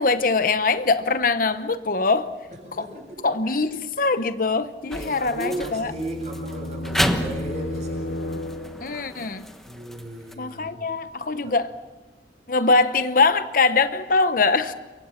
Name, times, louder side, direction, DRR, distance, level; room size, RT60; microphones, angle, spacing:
voice 1, 0.0-2.3 2.8-2.9 3.2-5.9 8.8-9.5 10.4-11.7 12.5-14.7, left 3 dB, 50° left, 0.9 m, -22 dB
voice 2, 2.6-3.2 3.5-3.6 4.9-8.2 9.6-10.9 11.4-11.6, right 1 dB, 40° right, 7.5 m, -35 dB
sound 1, 4.9-10.3, equal, ahead, 1.2 m, -31 dB
sound 2, 5.2-9.1, left 1 dB, 75° left, 1.5 m, -33 dB
28.0 x 23.5 x 5.9 m
head